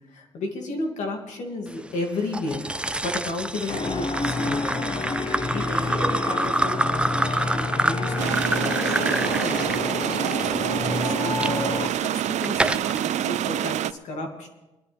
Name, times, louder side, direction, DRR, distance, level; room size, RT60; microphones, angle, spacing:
voice 1, 0.1-2.6 3.0-4.8 5.5-9.6 10.6-10.8 11.0-14.5, left 2 dB, 85° left, 2 dB, 2.5 m, -33 dB
sound 1, 2.3-11.5 12.1-13.0, right 1 dB, 10° right, 0.4 m, -28 dB
sound 2, 3.7-11.9, left 3 dB, 45° left, 1.2 m, -29 dB
sound 3, 8.2-13.9, right 11 dB, 80° right, 0.4 m, -26 dB
21.5 x 12.0 x 3.5 m, 1.0 s
cardioid pair, 70°, 12 cm